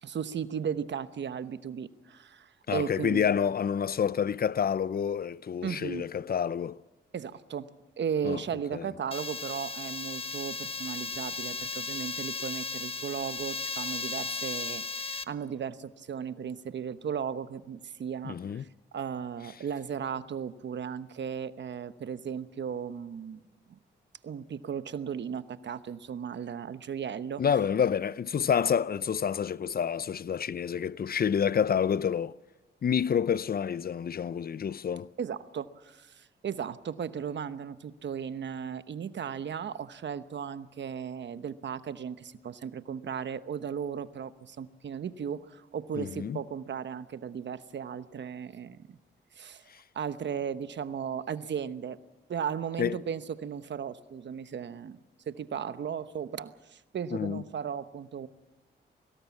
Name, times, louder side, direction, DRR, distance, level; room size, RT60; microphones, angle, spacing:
voice 1, 0.0-3.3 5.6-6.1 7.1-23.4 23.7-23.8 24.2-27.4 35.2-49.0 49.3-49.6 49.9-52.0 52.3-58.3, right 7 dB, 65° right, 1.0 m, -36 dB
voice 2, 2.7-6.8 8.2-8.4 8.7-8.9 18.2-18.7 27.4-32.4 32.8-35.1 45.9-46.4 49.7-49.8 52.8-53.0 57.1-57.4, left 7 dB, 50° left, 0.6 m, -28 dB
sound 1, 9.1-15.2, left 4 dB, 30° left, 1.0 m, -36 dB
23.0 x 18.5 x 7.2 m
cardioid pair, 60°, 20 cm